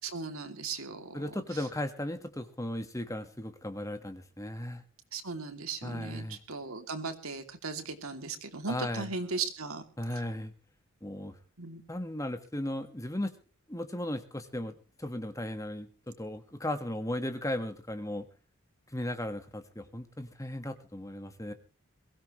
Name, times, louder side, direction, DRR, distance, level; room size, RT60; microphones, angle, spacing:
voice 1, 0.0-1.3 5.1-9.8 11.6-11.8, right 4 dB, 80° right, 6 dB, 2.8 m, -37 dB
voice 2, 1.1-4.8 5.8-6.4 8.7-9.1 10.0-10.5 11.0-11.4 11.9-13.3 13.7-18.3 18.9-21.5, left 1 dB, 15° left, 8 dB, 1.5 m, -36 dB
22.5 x 16.5 x 3.2 m, 0.37 s
head